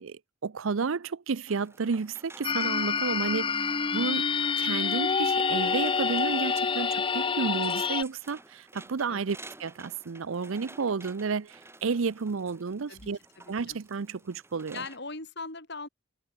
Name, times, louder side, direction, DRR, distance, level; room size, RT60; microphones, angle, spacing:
voice 1, 0.0-4.3 4.6-13.2 13.5-14.8, right 5 dB, 70° right, 0.6 m, -31 dB
sound 1, 1.5-15.0, right 2 dB, 10° right, 5.9 m, -52 dB
sound 2, 2.4-8.0, left 5 dB, 25° left, 0.5 m, -27 dB
voice 2, 13.4-13.8 14.7-15.9, left 3 dB, 55° left, 6.4 m, -40 dB
head